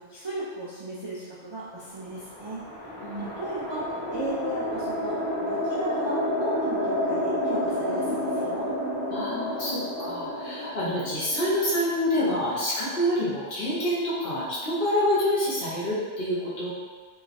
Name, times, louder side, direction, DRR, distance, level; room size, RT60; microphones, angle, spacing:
voice 1, 0.0-2.6 3.2-8.7, right 1 dB, 50° right, -9 dB, 0.3 m, -36 dB
sound 1, 2.0-12.4, left 1 dB, 25° left, 0.6 m, -30 dB
voice 2, 9.1-16.7, left 1 dB, 50° left, -10 dB, 1.3 m, -27 dB
3.6 x 3.0 x 2.6 m, 1.5 s
omnidirectional pair, 1.3 m